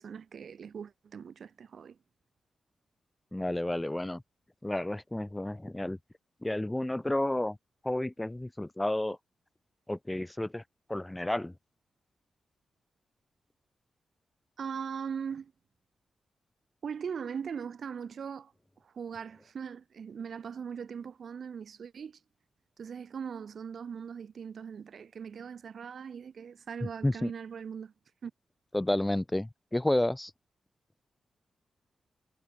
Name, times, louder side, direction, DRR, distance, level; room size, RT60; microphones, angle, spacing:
voice 1, 0.0-2.0 14.6-15.5 16.8-18.5 18.8-22.2 22.8-27.9 28.2-28.3, right 7 dB, 65° right, 0.9 m, -40 dB
voice 2, 3.3-4.2 4.6-6.0 6.4-7.6 7.8-9.2 9.9-10.6 10.9-11.5 27.0-27.3 28.7-30.3, left 1 dB, 10° left, 0.3 m, -31 dB
wide cardioid pair, 125°, 0 cm